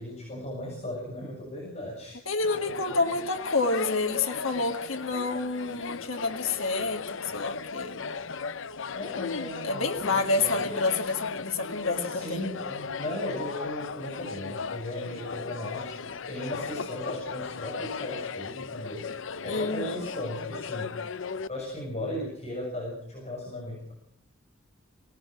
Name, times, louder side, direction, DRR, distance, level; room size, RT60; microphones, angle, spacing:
voice 1, 0.0-2.2 8.9-10.8 12.0-19.1 19.4-21.0 21.5-23.9, left 1 dB, 35° left, -2 dB, 7.2 m, -37 dB
voice 2, 2.3-8.0 9.6-12.5 19.5-20.0, left 3 dB, 85° left, 4 dB, 2.1 m, -29 dB
sound 1, 2.4-21.5, left 5 dB, 70° left, 0.8 m, -36 dB
24.5 x 18.5 x 6.2 m, 0.69 s
head